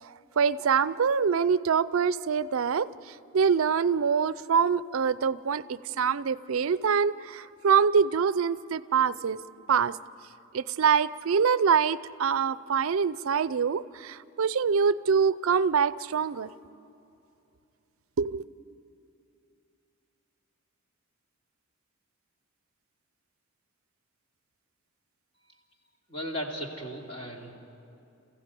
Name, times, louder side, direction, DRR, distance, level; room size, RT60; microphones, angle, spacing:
voice 1, 0.0-2.9 3.3-9.4 9.7-10.0 10.5-16.5 18.2-18.4, right 6 dB, 80° right, 16 dB, 0.5 m, -25 dB
voice 2, 26.1-27.5, equal, 30° left, 0 dB, 2.7 m, -36 dB
28.5 x 15.5 x 8.3 m, 2.7 s
head